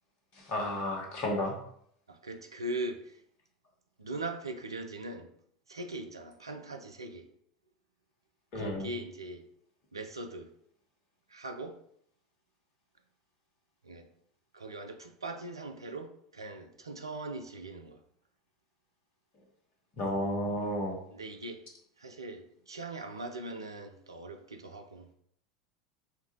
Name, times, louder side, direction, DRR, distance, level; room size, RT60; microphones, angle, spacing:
voice 1, 0.3-1.6 8.5-8.9 20.0-21.0, left 1 dB, 45° left, 1.1 m, -32 dB
voice 2, 2.1-3.2 4.0-5.3 5.7-7.3 8.5-9.5 9.9-10.5 11.3-11.8 13.8-14.1 14.5-18.0 21.1-21.6 22.0-25.1, right 2 dB, 80° right, 0.5 m, -40 dB
5.6 x 2.3 x 3.0 m
figure-of-eight pair, 75°, 2 cm